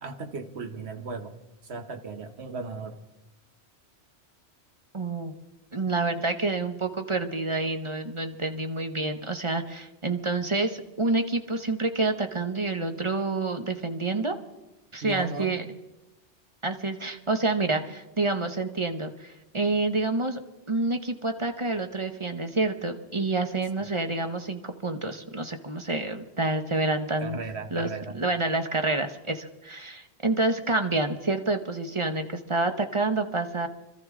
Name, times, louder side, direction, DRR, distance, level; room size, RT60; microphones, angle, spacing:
voice 1, 0.0-1.4 1.6-3.0 15.0-15.7 23.8-23.9 27.2-28.2, right 3 dB, 65° right, 7 dB, 1.4 m, -36 dB
voice 2, 4.9-5.3 5.7-14.3 14.9-15.7 16.6-20.4 20.7-27.4 27.7-27.9 28.1-33.7, right 3 dB, 30° right, 7 dB, 0.8 m, -28 dB
25.5 x 13.5 x 3.7 m, 0.99 s
omnidirectional pair, 1.2 m